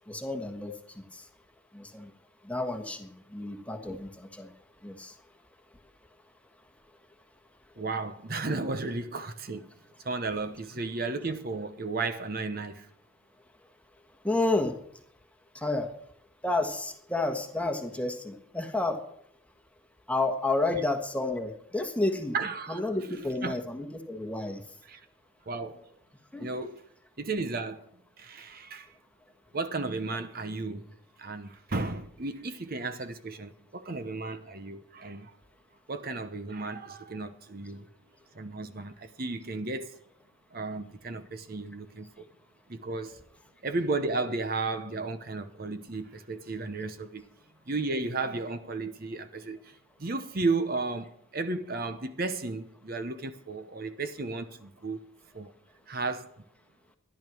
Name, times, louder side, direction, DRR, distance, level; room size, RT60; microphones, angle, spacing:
voice 1, 0.1-1.3 1.7-2.1 2.4-4.5 4.8-5.2 14.2-14.8 15.5-15.9 16.4-19.0 20.1-22.4 22.7-24.6 26.3-26.7, left 2 dB, 5° left, 1.4 m, -31 dB
voice 2, 7.8-9.7 10.0-12.9 22.3-22.9 23.4-23.6 24.9-25.0 25.5-25.8 26.4-26.8 27.2-27.8 28.2-28.9 29.5-30.9 31.2-35.3 35.9-37.9 38.3-39.9 40.5-42.3 42.7-43.2 43.6-47.2 47.7-55.0 55.3-55.5 55.9-56.3, right 3 dB, 45° right, 0.9 m, -34 dB
14.0 x 11.0 x 6.2 m
head